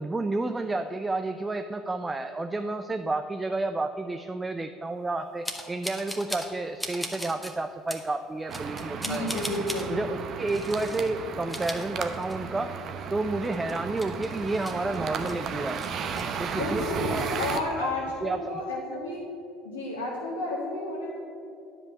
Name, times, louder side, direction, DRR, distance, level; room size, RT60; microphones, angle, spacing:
voice 1, 0.0-9.4 9.9-12.7 13.1-15.9 16.4-16.8 17.1-17.3 17.8-17.9 18.2-18.6, right 2 dB, 20° right, 8 dB, 0.5 m, -31 dB
sound 1, 5.4-6.5 6.8-7.5 7.9-8.1 8.5-9.9 10.5-11.1 11.4-12.6 12.9-13.0 13.4-15.3 15.7-16.2, equal, ahead, 1.4 m, -38 dB
sound 2, 8.5-17.6, right 6 dB, 50° right, 0.9 m, -34 dB
voice 2, 8.9-9.9 16.5-19.2 19.6-21.1, left 2 dB, 85° left, -5 dB, 1.4 m, -31 dB
10.0 x 5.4 x 8.2 m, 2.6 s
hypercardioid pair, 70°, 0 cm